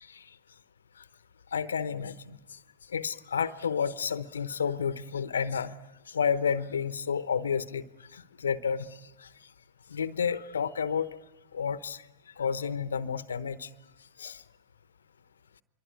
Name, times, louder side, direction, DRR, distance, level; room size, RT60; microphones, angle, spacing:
voice 1, 1.5-2.4 2.9-5.7 6.1-7.8 8.1-8.9 9.9-11.2 11.5-12.0 12.4-13.7 14.2-14.4, left 6 dB, 75° left, 15 dB, 0.9 m, -30 dB
26.0 x 23.5 x 9.7 m, 1.0 s
figure-of-eight pair, 100°, 0 cm